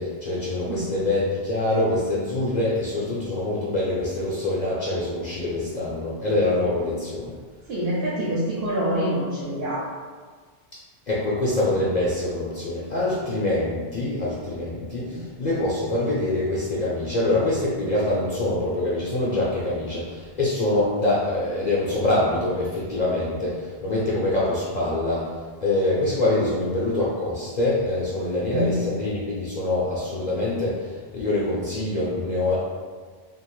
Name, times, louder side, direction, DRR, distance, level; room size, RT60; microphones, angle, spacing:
voice 1, 0.0-7.4 11.1-25.3 25.6-32.6, left 2 dB, 55° left, -6 dB, 0.6 m, -25 dB
voice 2, 7.7-9.9 15.0-15.2 28.5-28.7, equal, 70° right, -8 dB, 0.9 m, -26 dB
2.6 x 2.4 x 3.0 m, 1.5 s
omnidirectional pair, 1.1 m